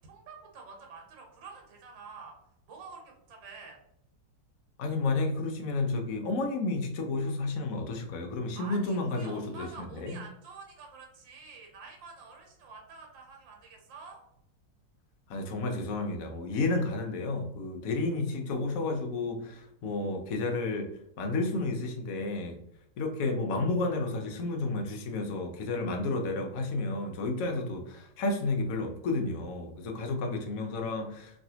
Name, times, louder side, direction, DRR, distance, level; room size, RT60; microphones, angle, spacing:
voice 1, 0.1-2.3 2.7-3.8 8.5-14.2, right 4 dB, 80° right, 0 dB, 1.5 m, -48 dB
voice 2, 4.8-10.2 15.3-20.9 21.2-22.6 23.0-31.4, left 3 dB, 65° left, 3 dB, 0.8 m, -31 dB
3.1 x 2.7 x 2.7 m, 0.75 s
omnidirectional pair, 2.0 m